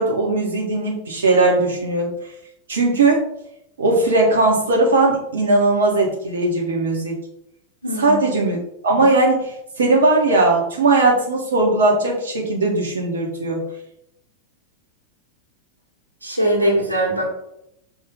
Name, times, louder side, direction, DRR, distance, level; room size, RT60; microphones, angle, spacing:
voice 1, 0.0-2.1 2.7-3.2 3.8-7.2 8.0-8.6 8.8-13.6, right 2 dB, 65° right, -2 dB, 1.4 m, -18 dB
voice 2, 7.8-8.2 16.2-17.3, right 1 dB, 85° right, -3 dB, 1.8 m, -21 dB
6.2 x 3.5 x 5.2 m, 0.80 s
figure-of-eight pair, 90°, 0 cm